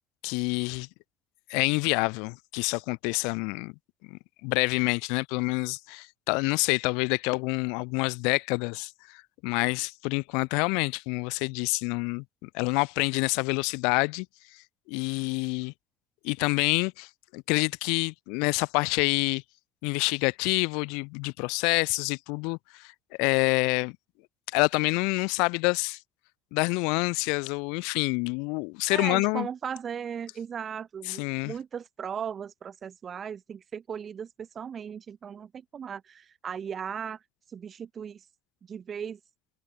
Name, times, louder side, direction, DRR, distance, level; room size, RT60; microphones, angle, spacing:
voice 1, 0.2-0.9 1.5-3.7 4.1-14.3 14.9-15.7 16.2-19.4 19.8-22.9 23.2-24.0 24.5-26.0 26.5-29.5 31.1-31.5, left 32 dB, 85° left, 4.3 m, -27 dB
voice 2, 28.9-37.2 37.5-38.3 38.6-39.2, right 7 dB, 25° right, 5.5 m, -37 dB
cardioid pair, 165°, 0 cm